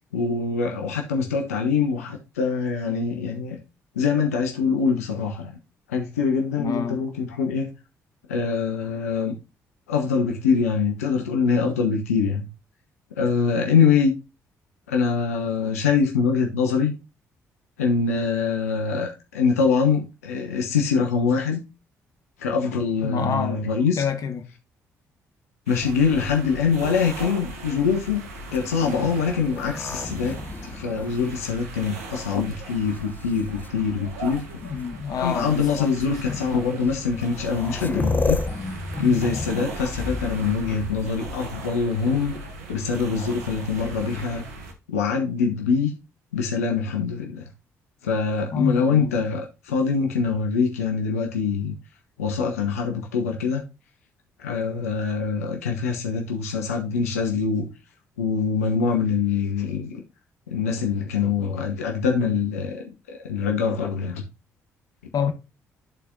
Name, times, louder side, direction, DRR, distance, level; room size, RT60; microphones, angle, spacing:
voice 1, 0.1-3.6 4.0-5.5 5.9-7.7 8.3-9.4 9.9-12.4 13.2-14.1 14.9-16.9 17.8-21.6 22.4-24.0 25.7-28.2 28.5-30.4 30.7-34.4 35.2-38.4 39.0-42.3 42.7-44.4 44.9-45.9 46.3-47.4 48.0-51.8 52.2-53.6 54.4-57.7 58.2-59.9 60.5-62.8 63.2-64.2, left 5 dB, 85° left, 0.8 m, -24 dB
voice 2, 6.6-7.1 23.0-23.6 24.0-24.4 34.7-36.4 48.5-49.2 65.1-65.3, left 6 dB, 50° left, 1.0 m, -28 dB
sound 1, 25.7-44.7, right 2 dB, 85° right, 1.0 m, -38 dB
sound 2, 28.4-32.3 33.0-33.7 34.8-34.9 35.6-35.8 36.9-37.0 37.2-41.7 43.6-44.3, left 3 dB, 25° left, 0.8 m, -32 dB
12.0 x 4.2 x 2.5 m
hypercardioid pair, 45°, 8 cm